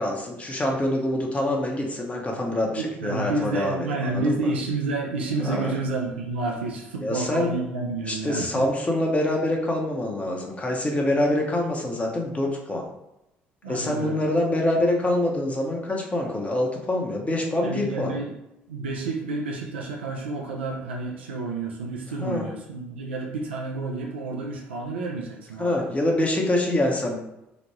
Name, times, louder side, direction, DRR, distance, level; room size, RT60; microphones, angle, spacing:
voice 1, 0.0-4.5 5.4-5.7 7.0-7.5 8.1-12.9 13.7-18.1 22.2-22.4 25.6-27.2, left 1 dB, 25° left, 0 dB, 0.8 m, -25 dB
voice 2, 2.8-8.7 13.6-14.2 17.6-18.3 18.7-25.8, right 3 dB, 85° right, -1 dB, 0.3 m, -30 dB
3.0 x 2.1 x 2.9 m, 0.89 s
hypercardioid pair, 50°, 6 cm